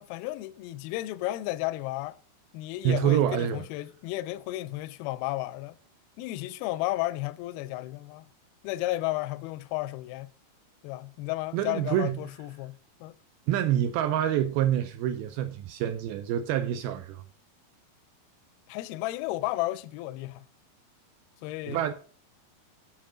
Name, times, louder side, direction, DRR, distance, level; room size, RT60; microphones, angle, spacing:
voice 1, 0.0-2.2 2.5-5.8 6.2-8.3 8.6-10.3 10.8-12.7 13.0-13.2 18.7-20.5 21.4-21.9, left 17 dB, 80° left, 2.2 m, -33 dB
voice 2, 2.8-3.6 11.5-12.1 13.5-17.2 21.7-21.9, right 11 dB, 80° right, 2.3 m, -26 dB
8.8 x 5.5 x 5.0 m
omnidirectional pair, 4.7 m